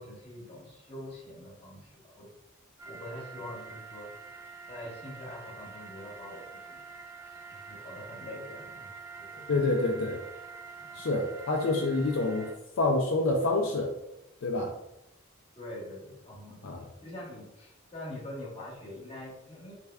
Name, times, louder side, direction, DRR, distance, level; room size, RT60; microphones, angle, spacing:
voice 1, 0.0-2.3 2.8-4.1 4.7-6.8 7.5-9.6 10.8-11.0 15.5-19.7, left 1 dB, 30° left, -4 dB, 1.1 m, -44 dB
sound 1, 2.8-12.5, right 5 dB, 15° right, 0.3 m, -46 dB
voice 2, 9.5-10.2 10.9-12.5 12.8-13.9 14.4-14.7 16.6-16.9, left 2 dB, 60° left, 0 dB, 0.4 m, -27 dB
3.4 x 3.4 x 2.2 m, 0.87 s
head